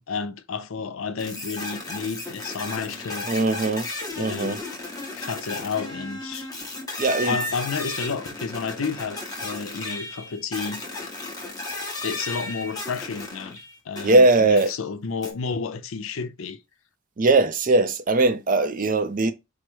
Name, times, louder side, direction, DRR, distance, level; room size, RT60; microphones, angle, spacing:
voice 1, 0.0-3.3 4.2-4.6 5.1-6.5 7.2-10.8 12.0-16.6, left 5 dB, 70° left, 0.5 m, -31 dB
sound 1, 1.2-14.3 14.6-14.7 15.2-15.3, left 2 dB, 15° left, 0.9 m, -34 dB
voice 2, 3.3-3.9 4.2-4.6 7.0-7.3 14.0-14.7 17.2-19.3, right 2 dB, 40° right, 0.5 m, -20 dB
4.6 x 2.0 x 4.5 m
head